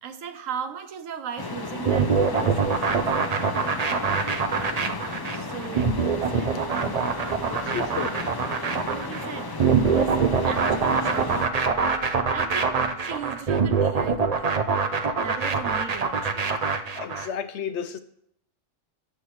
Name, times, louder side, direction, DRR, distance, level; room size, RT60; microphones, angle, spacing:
voice 1, 0.0-2.8 5.3-6.5 8.8-9.5 9.9-10.2 10.4-11.5 12.3-14.7 15.2-16.7, right 7 dB, 80° right, 1.2 m, -37 dB
sound 1, 1.4-11.5, left 3 dB, 25° left, 0.5 m, -34 dB
sound 2, 1.9-17.3, right 5 dB, 45° right, 0.5 m, -24 dB
voice 2, 7.4-8.2 17.0-18.0, left 7 dB, 65° left, 0.8 m, -32 dB
13.5 x 7.9 x 3.2 m
omnidirectional pair, 1.4 m